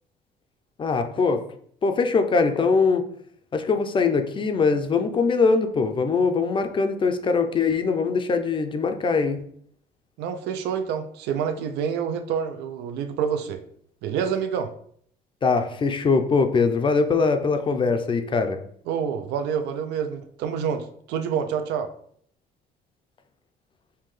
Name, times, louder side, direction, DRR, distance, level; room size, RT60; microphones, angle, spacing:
voice 1, 0.8-1.5 1.8-3.1 3.5-9.4 15.4-18.6, left 4 dB, 30° left, 7 dB, 0.5 m, -22 dB
voice 2, 10.2-13.6 14.0-14.7 18.9-21.9, right 7 dB, 85° right, 7 dB, 0.5 m, -27 dB
5.5 x 2.2 x 3.2 m, 0.63 s
cardioid pair, 110°, 17 cm